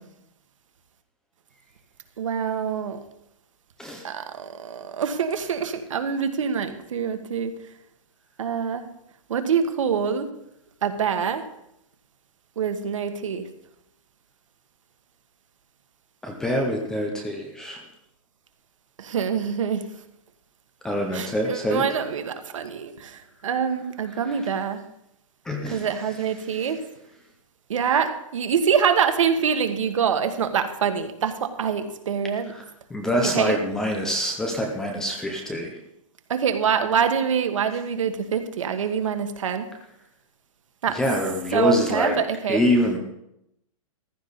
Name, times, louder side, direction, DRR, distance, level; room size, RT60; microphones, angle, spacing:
voice 1, 2.2-3.0 4.0-7.5 8.4-8.8 9.3-10.3 10.8-11.4 12.6-13.5 19.0-19.9 21.1-24.8 25.7-26.8 27.7-32.5 33.3-33.6 36.3-39.7 40.8-41.0 41.5-42.6, right 7 dB, 65° right, 7 dB, 1.5 m, -25 dB
voice 2, 16.2-17.8 20.8-21.8 24.3-24.4 25.5-25.9 32.9-35.7 40.9-42.2 42.5-43.0, equal, 5° left, 2 dB, 0.5 m, -25 dB
15.0 x 12.0 x 4.0 m, 0.81 s
hypercardioid pair, 180°, 18 cm